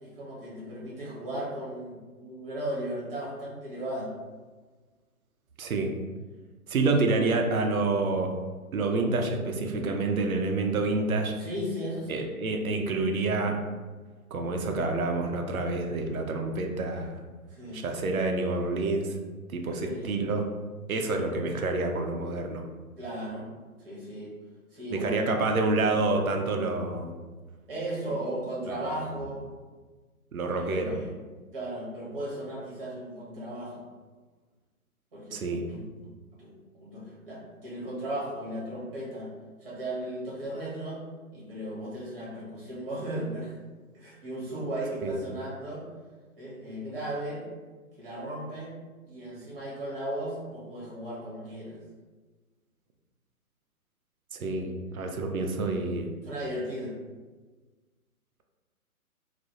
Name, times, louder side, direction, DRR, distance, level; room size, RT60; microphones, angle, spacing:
voice 1, 0.0-4.1 6.8-7.2 11.4-12.3 17.5-17.8 19.7-20.2 23.0-23.5 23.8-24.3 24.7-25.5 27.7-29.4 30.5-31.1 31.5-33.9 35.1-36.0 36.4-39.3 39.6-41.0 41.3-43.6 43.9-45.8 46.4-47.5 48.0-48.7 49.0-51.8 56.2-57.0, right 1 dB, 40° right, -5 dB, 0.9 m, -36 dB
voice 2, 5.6-5.9 6.7-8.3 8.7-11.3 12.1-13.6 14.3-17.2 17.7-19.2 19.5-20.4 20.9-22.7 24.9-27.1 28.7-28.8 30.3-31.0 35.3-35.6 45.0-45.2 54.3-56.1, right 3 dB, 70° right, 4 dB, 0.5 m, -28 dB
2.3 x 2.0 x 2.8 m, 1.3 s
figure-of-eight pair, 130°, 45 cm